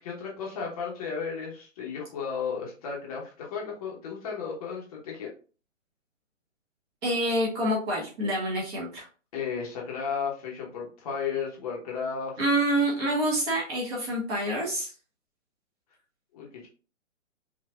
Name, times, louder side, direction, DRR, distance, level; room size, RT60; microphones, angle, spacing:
voice 1, 0.0-5.3 9.3-12.4 16.3-16.7, left 6 dB, 30° left, -2 dB, 1.0 m, -34 dB
voice 2, 7.0-9.1 12.4-14.9, right 1 dB, 20° right, -3 dB, 1.1 m, -27 dB
5.4 x 2.5 x 2.3 m, 0.36 s
figure-of-eight pair, 135°, 38 cm